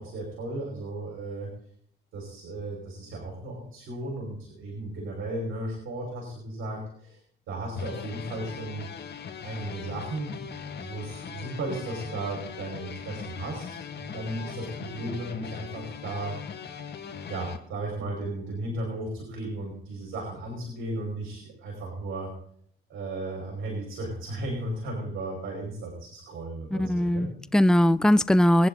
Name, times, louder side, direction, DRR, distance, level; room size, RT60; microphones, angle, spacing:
voice 1, 0.0-1.5 2.1-7.2 7.5-8.9 9.4-16.3 17.3-22.3 22.9-27.3, right 2 dB, 80° right, -1 dB, 5.2 m, -35 dB
sound 1, 7.8-17.6, left 7 dB, 60° left, 2.1 m, -39 dB
voice 2, 26.7-28.7, left 1 dB, 5° left, 15 dB, 0.6 m, -20 dB
22.0 x 10.5 x 3.9 m, 0.65 s
cardioid pair, 90°, 20 cm